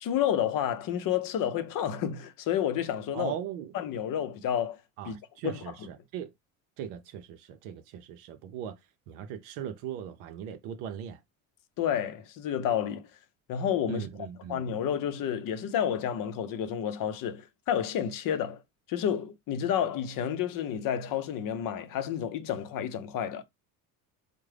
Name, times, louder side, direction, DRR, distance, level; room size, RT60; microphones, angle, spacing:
voice 1, 0.0-3.3 3.7-4.8 5.0-5.2 5.4-5.6 11.8-13.1 13.5-14.1 14.5-18.6 18.9-23.4, left 9 dB, 55° left, 0.7 m, -30 dB
voice 2, 3.1-3.7 5.0-6.3 6.8-8.8 9.1-11.2 13.9-14.6, right 9 dB, 75° right, 0.6 m, -39 dB
3.6 x 2.1 x 3.2 m
hypercardioid pair, 75°, 42 cm